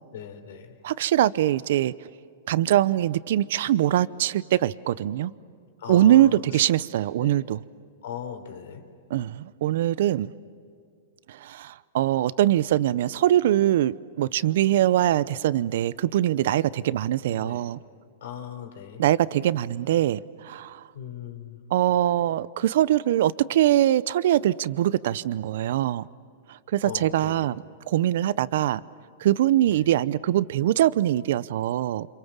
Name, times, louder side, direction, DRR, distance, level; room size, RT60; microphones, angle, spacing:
voice 1, 0.1-0.9 5.8-6.7 7.1-7.4 8.0-8.8 17.3-17.7 18.2-19.1 20.9-21.6 26.8-27.5 29.7-29.9, left 8 dB, 75° left, 5 dB, 4.2 m, -39 dB
voice 2, 0.8-1.9 2.5-5.3 5.9-7.6 9.1-10.3 11.3-17.8 19.0-20.8 21.7-26.1 26.7-27.5 27.9-28.8 29.2-32.1, right 12 dB, 70° right, 19 dB, 0.7 m, -22 dB
30.0 x 26.5 x 7.4 m, 2.3 s
hypercardioid pair, 130°, 0 cm